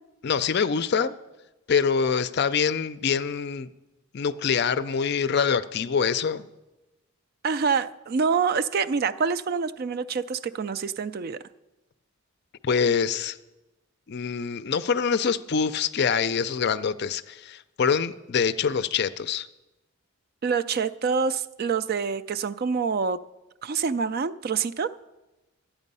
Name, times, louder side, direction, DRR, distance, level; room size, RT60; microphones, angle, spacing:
voice 1, 0.2-1.1 1.7-3.7 4.1-6.4 12.6-13.4 14.1-19.5, left 6 dB, 50° left, 0.4 m, -25 dB
voice 2, 7.4-11.4 20.4-23.2 23.6-24.9, right 5 dB, 45° right, 0.3 m, -26 dB
12.5 x 9.0 x 5.4 m
head